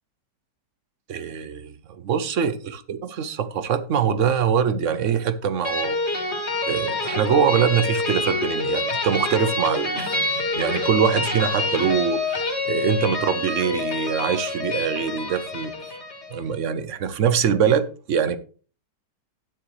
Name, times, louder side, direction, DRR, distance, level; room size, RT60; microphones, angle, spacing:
voice 1, 1.1-6.0 6.7-16.0 16.3-18.4, right 7 dB, 55° right, 1.0 m, -23 dB
sound 1, 5.6-16.4, left 2 dB, 35° left, 2.4 m, -27 dB
12.0 x 9.5 x 3.2 m
omnidirectional pair, 1.9 m